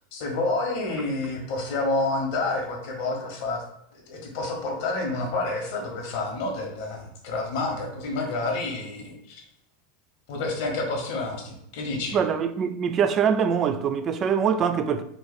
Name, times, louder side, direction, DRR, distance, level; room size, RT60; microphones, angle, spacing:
voice 1, 0.1-3.6 3.9-9.4 10.3-12.2, left 2 dB, 60° left, 1.3 m, -29 dB
voice 2, 12.1-15.0, right 7 dB, 35° right, 0.3 m, -23 dB
3.9 x 2.5 x 4.2 m
hypercardioid pair, 85°, 0 cm